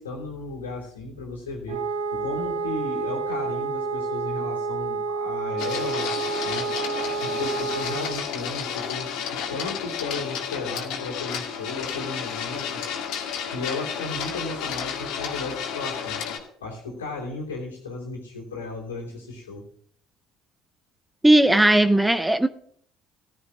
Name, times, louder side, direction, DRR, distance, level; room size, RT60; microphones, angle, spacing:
voice 1, 0.0-1.8 2.1-6.1 6.4-6.7 7.0-12.8 13.5-16.2 16.6-19.6, left 3 dB, 85° left, -2 dB, 2.9 m, -34 dB
Wind instrument woodwind instrument, 1.7-8.3, right 4 dB, 75° right, 0.9 m, -29 dB
Printer, 5.6-16.4, left 7 dB, 60° left, 2.0 m, -32 dB
voice 2, 21.2-22.5, right 1 dB, 10° right, 12 dB, 0.7 m, -17 dB
15.5 x 14.5 x 2.4 m, 0.64 s
figure-of-eight pair, 55°, 0 cm